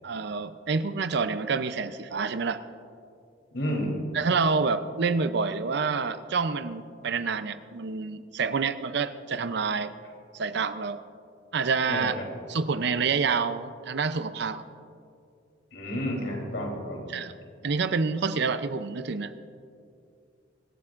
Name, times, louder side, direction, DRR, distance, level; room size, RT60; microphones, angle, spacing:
voice 1, 0.0-2.6 4.1-9.9 10.3-11.0 11.5-12.2 12.5-14.6 17.1-17.3 17.6-19.4, right 5 dB, 60° right, 11 dB, 0.6 m, -28 dB
voice 2, 3.5-4.0 11.9-12.3 15.7-17.0, equal, 70° left, -1 dB, 3.5 m, -31 dB
25.0 x 13.0 x 2.5 m, 2.4 s
head